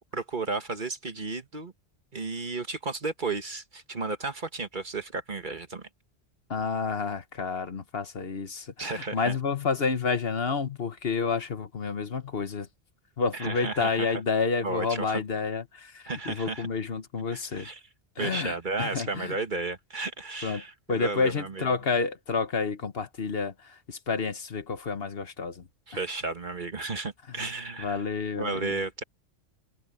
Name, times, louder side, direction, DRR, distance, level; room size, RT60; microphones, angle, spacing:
voice 1, 0.1-1.7 2.1-5.9 8.8-9.4 13.3-14.2 14.6-15.2 16.1-16.7 17.3-17.8 18.2-21.7 25.9-28.0 28.4-29.0, right 3 dB, 45° right, 1.7 m, -33 dB
voice 2, 6.5-12.7 13.2-17.7 18.2-19.4 20.4-20.6 20.9-25.7 27.3-27.4 27.8-28.8, left 5 dB, 60° left, 1.3 m, -30 dB
omnidirectional pair, 1.2 m